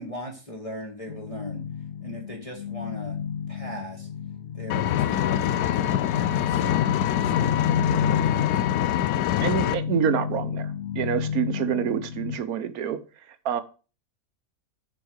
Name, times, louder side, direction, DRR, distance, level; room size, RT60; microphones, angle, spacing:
voice 1, 0.0-1.6 2.0-3.2 3.5-4.1 4.5-8.9, equal, 20° left, 0 dB, 1.6 m, -40 dB
sound 1, 1.1-12.4, left 7 dB, 65° left, 0.7 m, -31 dB
Engine, 4.7-9.7, left 11 dB, 80° left, 1.1 m, -24 dB
voice 2, 9.4-10.7 11.0-13.0 13.4-13.6, right 8 dB, 70° right, 12 dB, 1.3 m, -27 dB
7.0 x 4.8 x 6.3 m, 0.34 s
omnidirectional pair, 1.6 m